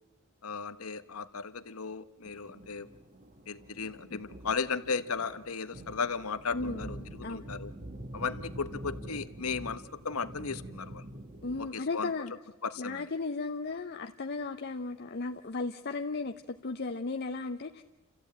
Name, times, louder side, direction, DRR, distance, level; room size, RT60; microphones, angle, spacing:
voice 1, 0.4-2.9 3.5-7.7 8.1-11.0 11.6-12.1 12.6-13.1, left 5 dB, 80° left, 1.0 m, -36 dB
sound 1, 2.2-11.7, right 1 dB, 35° right, 1.5 m, -46 dB
voice 2, 6.5-7.5 11.4-12.3 12.8-17.8, left 3 dB, 50° left, 0.7 m, -35 dB
29.0 x 14.5 x 8.7 m
head